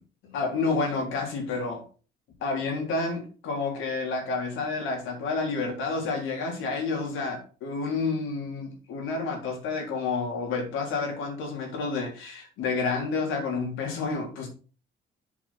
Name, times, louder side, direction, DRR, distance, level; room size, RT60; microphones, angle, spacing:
voice 1, 0.2-1.8 2.4-14.5, left 4 dB, 90° left, 3.5 m, -29 dB
8.1 x 5.2 x 4.4 m
cardioid pair, 90°, 20 cm